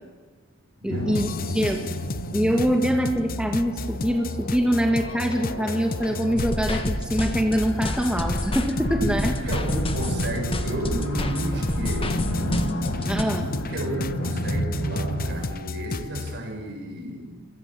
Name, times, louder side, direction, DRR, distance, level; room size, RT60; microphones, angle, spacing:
voice 1, 0.8-1.9 2.3-9.3 13.1-13.5, equal, 5° right, 3 dB, 1.6 m, -24 dB
sound 1, 0.9-15.4, equal, 75° left, 6.0 m, -32 dB
sound 2, 1.1-16.4, left 3 dB, 40° left, 0.8 m, -33 dB
sound 3, 6.4-13.2, left 1 dB, 25° left, 1.7 m, -29 dB
voice 2, 9.0-12.2 13.7-17.4, right 1 dB, 50° right, 3 dB, 6.8 m, -32 dB
26.0 x 25.0 x 7.5 m, 1.4 s
head